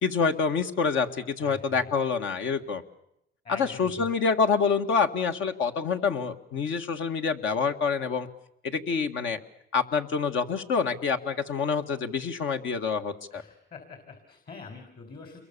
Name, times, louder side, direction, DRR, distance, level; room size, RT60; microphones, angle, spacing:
voice 1, 0.0-2.8 3.6-8.3 8.7-9.4 9.7-13.4, left 5 dB, 75° left, 5 dB, 2.1 m, -27 dB
voice 2, 1.4-1.9 3.4-4.1 13.3-15.4, left 4 dB, 55° left, 5 dB, 4.6 m, -45 dB
28.0 x 22.5 x 7.0 m, 0.80 s
cardioid pair, 90°, 20 cm